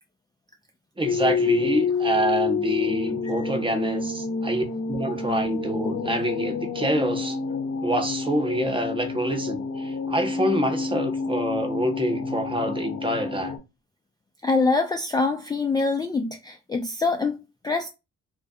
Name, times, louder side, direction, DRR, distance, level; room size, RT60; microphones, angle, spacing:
sound 1, 1.0-13.6, left 4 dB, 45° left, 0.6 m, -28 dB
voice 1, 1.0-7.4 7.8-13.5, right 1 dB, 15° right, 0.7 m, -26 dB
voice 2, 14.4-17.9, left 3 dB, 15° left, 0.3 m, -24 dB
2.4 x 2.1 x 2.6 m
supercardioid pair, 60°, 31 cm